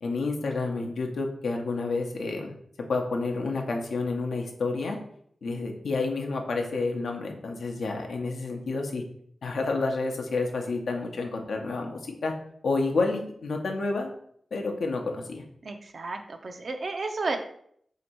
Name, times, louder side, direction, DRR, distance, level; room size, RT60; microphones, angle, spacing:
voice 1, 0.0-2.5 2.9-5.0 5.4-9.0 9.4-12.3 12.6-14.1 14.5-15.4, left 3 dB, 85° left, 2 dB, 0.6 m, -29 dB
voice 2, 15.6-17.4, right 3 dB, 60° right, 6 dB, 0.5 m, -32 dB
2.8 x 2.6 x 4.3 m, 0.65 s
cardioid pair, 55°, 0 cm